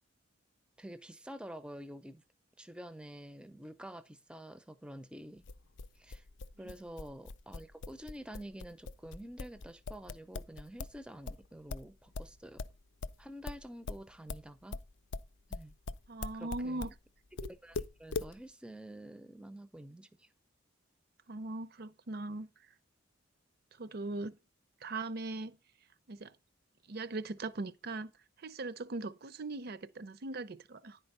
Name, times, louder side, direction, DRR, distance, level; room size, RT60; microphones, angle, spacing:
voice 1, 0.8-2.2 2.6-5.5 5.9-6.3 6.6-12.6 13.2-14.8 15.5-15.7 16.3-16.9 17.4-20.3, right 1 dB, 5° right, 0.5 m, -48 dB
sound 1, 5.4-11.0 11.2-17.0 17.4-18.3, left 3 dB, 60° left, 0.5 m, -41 dB
voice 2, 16.1-16.9 21.3-22.5 23.8-24.4 24.8-25.6 26.1-26.3 26.9-28.1 28.4-31.0, right 2 dB, 50° right, 0.6 m, -40 dB
10.0 x 4.5 x 5.4 m
head